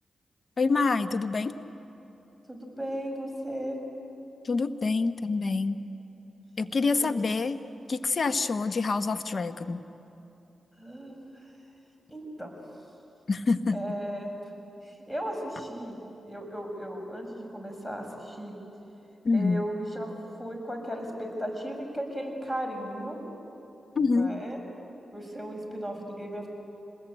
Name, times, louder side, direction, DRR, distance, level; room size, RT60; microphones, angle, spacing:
voice 1, 0.6-1.5 4.4-5.8 6.6-7.6 7.9-9.8 13.3-13.8 19.2-19.7 23.9-24.3, left 4 dB, 55° left, 10 dB, 1.2 m, -26 dB
voice 2, 2.5-3.8 6.8-7.2 10.8-11.5 12.1-12.5 13.7-14.3 14.8-16.0 16.2-18.6 19.3-20.1 20.4-23.2 24.0-24.6 25.1-26.5, equal, 10° left, 2 dB, 7.1 m, -36 dB
27.0 x 20.5 x 9.0 m, 2.9 s
supercardioid pair, 45°, 0 cm